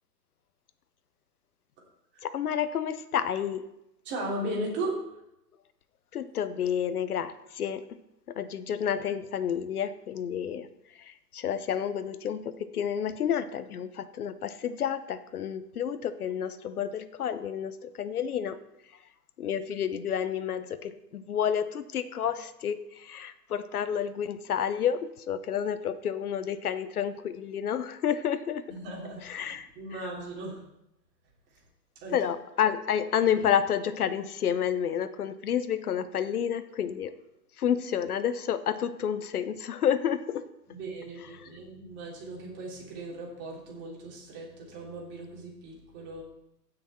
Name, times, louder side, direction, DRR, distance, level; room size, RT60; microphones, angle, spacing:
voice 1, 2.2-3.6 6.1-7.8 8.4-10.7 11.3-18.6 19.4-28.6 29.3-29.7 32.1-37.1 37.6-40.4, left 8 dB, 60° left, 13 dB, 1.0 m, -30 dB
voice 2, 4.0-4.9 28.7-30.6 31.5-31.6 31.9-32.3 40.7-46.2, right 1 dB, 20° right, -3 dB, 3.4 m, -37 dB
16.0 x 6.4 x 4.4 m, 0.86 s
hypercardioid pair, 135°, 50 cm